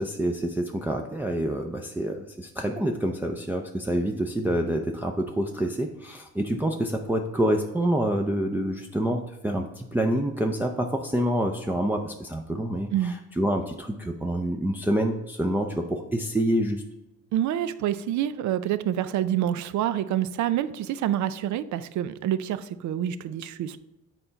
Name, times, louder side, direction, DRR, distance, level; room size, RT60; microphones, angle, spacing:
voice 1, 0.0-16.8, right 1 dB, 5° right, 1 dB, 0.5 m, -27 dB
voice 2, 17.3-23.8, right 11 dB, 70° right, 14 dB, 0.5 m, -27 dB
7.7 x 4.5 x 3.9 m, 0.99 s
cardioid pair, 90°, 30 cm